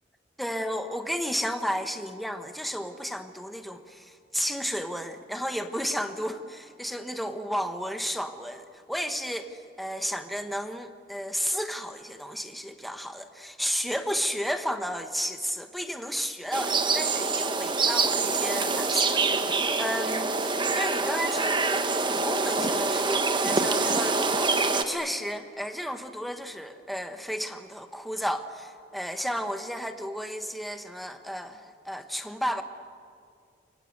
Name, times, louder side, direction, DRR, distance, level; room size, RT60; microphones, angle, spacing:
voice 1, 0.4-32.6, equal, ahead, 6 dB, 1.3 m, -33 dB
sound 1, 16.5-24.8, right 3 dB, 25° right, 1.4 m, -25 dB
29.5 x 24.0 x 8.0 m, 2.2 s
head